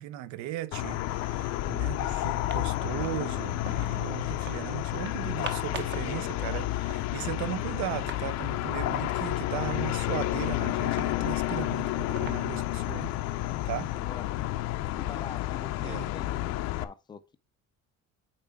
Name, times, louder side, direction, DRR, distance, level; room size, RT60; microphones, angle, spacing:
voice 1, 0.0-13.2 13.7-13.9 15.8-16.1, right 14 dB, 65° right, 0.7 m, -37 dB
sound 1, 0.7-16.8, left 15 dB, 60° left, 0.6 m, -31 dB
sound 2, 2.4-3.9 4.3-4.6 4.9-6.1 6.4-6.5 6.7-8.3 8.6-8.7 8.9-9.2 9.6-12.9, right 7 dB, 35° right, 0.9 m, -45 dB
voice 2, 6.2-6.7 14.0-14.2 15.0-16.3 16.6-17.4, left 6 dB, 15° left, 0.4 m, -45 dB
9.0 x 4.7 x 3.6 m
cardioid pair, 170°, 30 cm